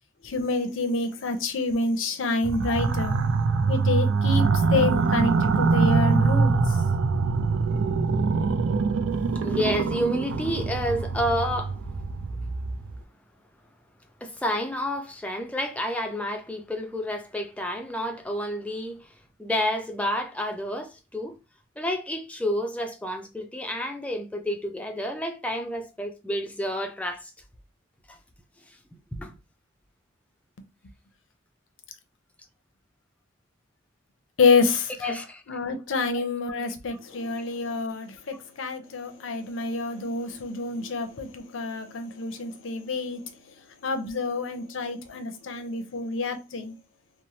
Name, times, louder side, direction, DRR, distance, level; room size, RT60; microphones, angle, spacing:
voice 1, 0.2-3.1 3.7-6.8 34.4-34.9 35.5-43.2 43.8-46.7, left 3 dB, 75° left, 0.6 m, -27 dB
sound 1, 2.4-13.0, right 4 dB, 80° right, 0.4 m, -24 dB
voice 2, 9.4-11.8 14.2-19.0 19.4-21.4 21.8-27.3 28.1-28.2 29.2-29.3 35.0-35.6 36.0-36.2 36.9-37.0 38.3-38.4, equal, 5° left, 0.4 m, -30 dB
3.0 x 2.0 x 2.7 m
head